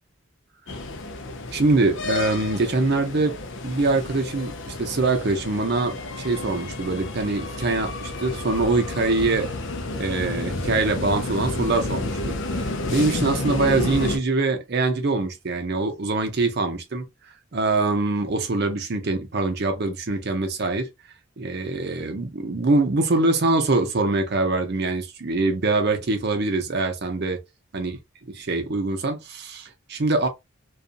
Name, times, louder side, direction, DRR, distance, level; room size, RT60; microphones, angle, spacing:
sound 1, 0.7-14.2, left 2 dB, 55° left, 0.5 m, -31 dB
voice 1, 1.5-3.4 3.6-9.5 9.9-17.0 17.5-20.9 21.4-27.4 27.7-27.9 28.2-30.3, right 3 dB, 50° right, 0.6 m, -24 dB
2.5 x 2.4 x 2.5 m
head